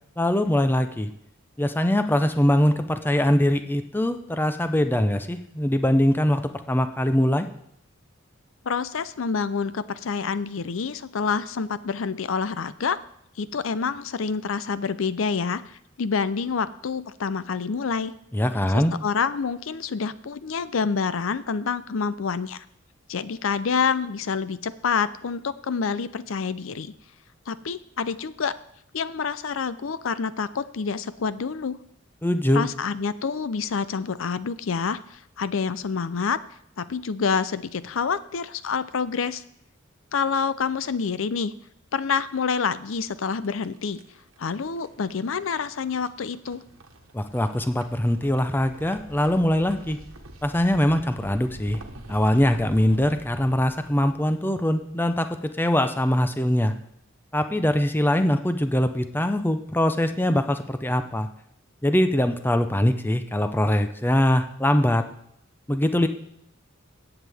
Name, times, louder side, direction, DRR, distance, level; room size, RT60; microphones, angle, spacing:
voice 1, 0.2-1.1 1.6-7.5 18.3-19.0 32.2-32.7 47.1-50.0 50.4-51.8 52.1-55.3 55.6-56.7 57.3-61.3 61.8-65.0 65.7-66.1, left 1 dB, 10° left, 9 dB, 0.6 m, -22 dB
voice 2, 8.6-13.0 13.4-18.1 18.7-22.6 23.1-26.9 27.5-28.6 28.9-31.8 32.5-36.4 36.8-39.4 40.1-41.5 41.9-44.0 44.4-46.6, left 5 dB, 70° left, 15 dB, 0.5 m, -27 dB
sound 1, 43.0-55.1, right 1 dB, 80° right, 1.3 m, -46 dB
16.5 x 8.1 x 3.5 m, 0.73 s
head